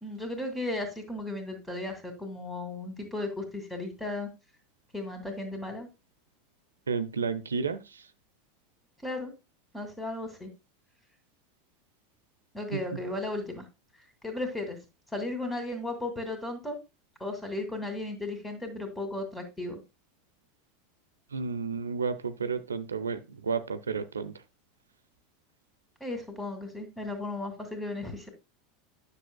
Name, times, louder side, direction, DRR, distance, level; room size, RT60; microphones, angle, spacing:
voice 1, 0.0-4.3 4.9-5.9 9.0-9.3 9.7-10.5 12.5-13.6 14.2-14.8 15.1-16.8 17.2-19.8 26.0-28.3, left 2 dB, 10° left, 2.4 m, -35 dB
voice 2, 6.9-8.0 12.7-12.8 21.3-24.3, right 5 dB, 85° right, 0.5 m, -32 dB
9.8 x 6.8 x 2.2 m
hypercardioid pair, 85°, 0 cm